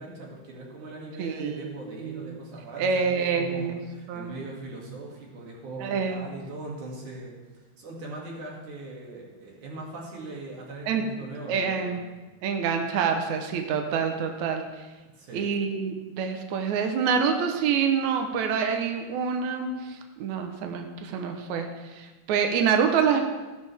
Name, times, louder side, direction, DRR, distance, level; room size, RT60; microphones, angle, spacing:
voice 1, 0.0-12.0 15.2-15.5, right 2 dB, 50° right, -3 dB, 3.6 m, -40 dB
voice 2, 1.2-1.7 2.0-2.4 2.8-3.8 4.1-4.3 5.8-6.3 10.9-11.1 11.5-12.0 12.4-14.6 15.3-23.2, right 6 dB, 90° right, 5 dB, 1.6 m, -26 dB
15.5 x 12.0 x 3.5 m, 1.2 s
omnidirectional pair, 4.8 m